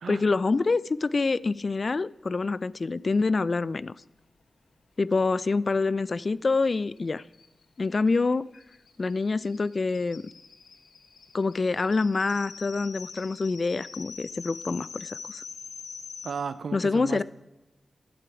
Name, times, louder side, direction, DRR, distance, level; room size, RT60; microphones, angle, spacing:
voice 1, 0.1-3.9 5.0-7.2 7.8-8.5 9.0-10.2 11.3-15.4 16.7-17.2, left 3 dB, 50° left, 20 dB, 0.3 m, -26 dB
sound 1, 6.6-6.7 7.0-7.1 7.3-16.3, left 5 dB, 90° left, 1.2 m, -44 dB
voice 2, 16.2-17.2, right 5 dB, 75° right, 13 dB, 0.7 m, -34 dB
12.0 x 10.5 x 4.8 m, 1.1 s
cardioid pair, 65°, 0 cm